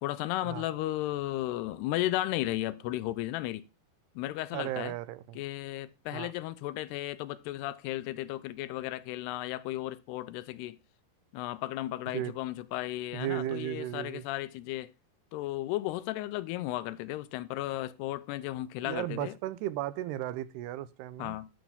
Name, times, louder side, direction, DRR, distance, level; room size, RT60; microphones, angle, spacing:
voice 1, 0.0-3.6 4.2-4.9 5.4-10.8 11.3-14.9 15.3-19.3 21.2-21.5, left 15 dB, 85° left, 2.7 m, -34 dB
voice 2, 4.5-5.4 6.1-6.3 12.1-12.3 13.1-14.3 18.8-21.4, right 13 dB, 80° right, 2.8 m, -35 dB
11.5 x 8.9 x 3.6 m
omnidirectional pair, 4.7 m